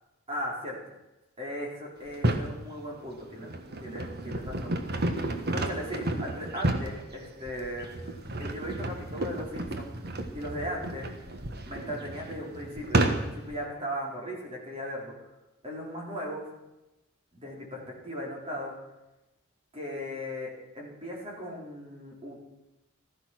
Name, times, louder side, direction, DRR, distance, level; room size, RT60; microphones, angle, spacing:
voice 1, 0.3-0.8 1.4-3.5 3.8-5.1 5.5-7.9 8.4-9.9 10.3-11.2 11.6-15.1 15.6-16.5 17.3-18.7 19.7-22.4, equal, 30° right, -2 dB, 4.4 m, -37 dB
sound 1, 2.1-2.6 3.2-13.5, right 1 dB, 50° right, 1.4 m, -31 dB
14.5 x 14.0 x 6.2 m, 0.98 s
head